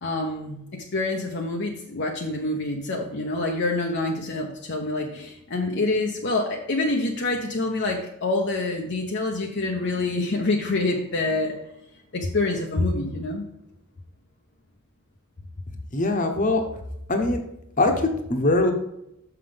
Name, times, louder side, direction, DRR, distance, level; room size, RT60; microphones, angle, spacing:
voice 1, 0.0-11.6 12.1-13.4, left 2 dB, 55° left, 0 dB, 0.9 m, -26 dB
voice 2, 15.9-16.6 17.1-17.4 17.8-18.7, left 2 dB, 35° left, 4 dB, 1.1 m, -22 dB
6.5 x 5.9 x 5.2 m, 0.82 s
head